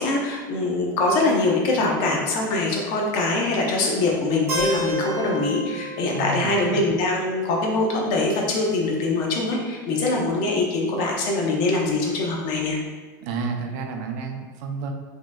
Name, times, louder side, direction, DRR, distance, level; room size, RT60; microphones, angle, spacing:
voice 1, 0.0-12.8, left 2 dB, 50° left, -1 dB, 0.6 m, -23 dB
Keyboard (musical), 4.5-8.4, right 1 dB, 25° right, 1.4 m, -32 dB
voice 2, 6.1-6.5 13.2-14.9, right 4 dB, 60° right, 4 dB, 0.4 m, -30 dB
3.0 x 2.7 x 2.2 m, 1.4 s
supercardioid pair, 145°, 10 cm